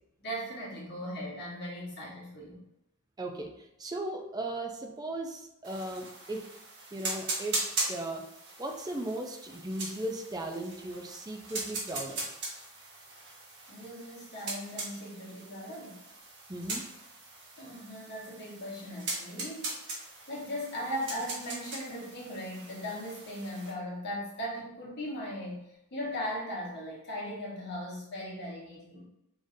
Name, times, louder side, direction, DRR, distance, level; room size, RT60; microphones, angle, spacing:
voice 1, 0.2-2.6 13.7-16.0 17.6-19.8 20.3-29.1, equal, 50° left, -4 dB, 1.5 m, -38 dB
voice 2, 3.2-3.5 3.8-6.4 6.9-7.6 7.9-8.3 8.6-12.2 16.5-16.9, right 1 dB, 20° right, 2 dB, 0.5 m, -37 dB
sound 1, 5.6-23.7, right 2 dB, 55° right, 1.4 m, -40 dB
5.2 x 3.7 x 2.7 m, 0.85 s
head